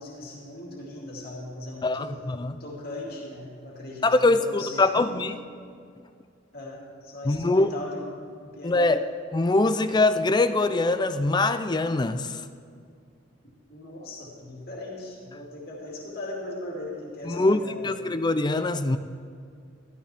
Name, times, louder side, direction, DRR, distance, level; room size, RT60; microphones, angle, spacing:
voice 1, 0.0-2.2 2.6-5.2 6.5-9.0 13.7-17.9, left 1 dB, 55° left, -3 dB, 2.4 m, -39 dB
voice 2, 1.8-2.6 4.0-5.4 7.2-7.7 8.6-9.0 9.3-12.4 17.3-19.0, left 2 dB, 25° left, 11 dB, 0.4 m, -23 dB
14.0 x 13.5 x 3.5 m, 2.3 s
head